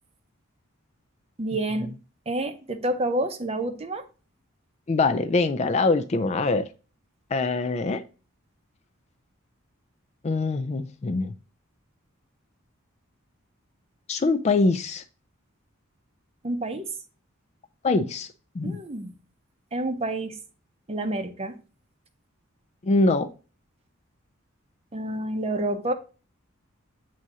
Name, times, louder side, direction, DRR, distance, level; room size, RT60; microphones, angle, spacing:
voice 1, 1.4-2.0 2.3-4.1 16.4-16.9 18.6-19.2 19.7-20.4 20.9-21.6 24.9-25.9, right 1 dB, 30° right, 0.6 m, -29 dB
voice 2, 4.9-6.7 7.3-8.0 10.2-11.3 14.1-15.0 17.8-18.3 18.5-18.8 22.8-23.3, left 3 dB, 30° left, 0.3 m, -23 dB
7.5 x 2.7 x 4.7 m
head